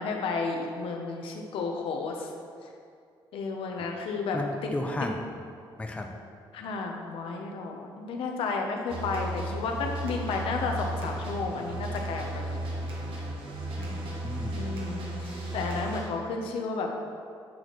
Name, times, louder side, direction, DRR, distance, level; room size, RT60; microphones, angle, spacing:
voice 1, 0.0-2.3 3.3-4.4 6.5-12.6 14.5-17.0, left 4 dB, 80° left, 2 dB, 0.7 m, -32 dB
voice 2, 4.3-5.2 5.8-6.1 13.8-14.7, left 2 dB, 15° left, 2 dB, 0.5 m, -34 dB
sound 1, 8.9-16.0, right 1 dB, 75° right, 1.1 m, -34 dB
8.5 x 4.1 x 3.1 m, 2.2 s
cardioid pair, 110°, 9 cm